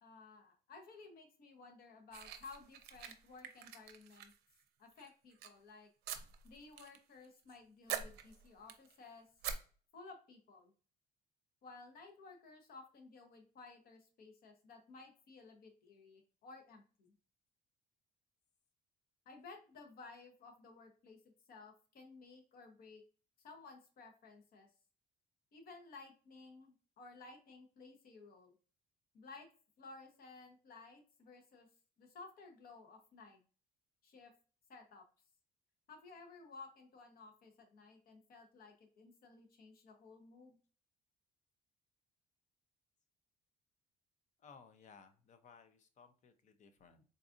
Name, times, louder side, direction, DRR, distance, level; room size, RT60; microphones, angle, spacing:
voice 1, 0.0-4.3 4.8-5.9 6.4-9.3 9.9-10.7 11.6-17.1 19.2-21.2 21.5-23.0 23.4-24.7 25.5-28.5 29.1-29.5 29.8-31.7 32.0-33.4 34.0-34.3 34.7-35.0 35.9-40.6, left 3 dB, 60° left, 4 dB, 1.0 m, -56 dB
sound 1, 2.1-4.6 5.0-5.5 6.1-7.0 7.2-7.6 7.9-8.9 9.4-9.5, right 9 dB, 75° right, 0.5 m, -45 dB
voice 2, 44.4-47.0, left 5 dB, 45° left, 9 dB, 0.6 m, -60 dB
3.9 x 2.5 x 2.5 m, 0.39 s
cardioid pair, 110°, 17 cm